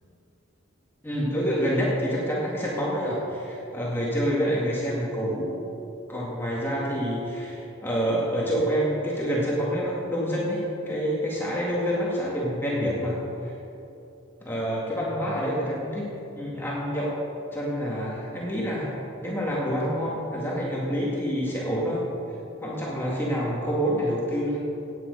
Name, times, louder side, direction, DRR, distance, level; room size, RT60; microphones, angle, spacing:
voice 1, 1.0-5.5 6.1-13.5 14.4-16.1 16.4-17.1 17.5-22.0 22.6-24.6, equal, 10° left, -6 dB, 1.9 m, -27 dB
16.5 x 9.1 x 5.3 m, 2.9 s
head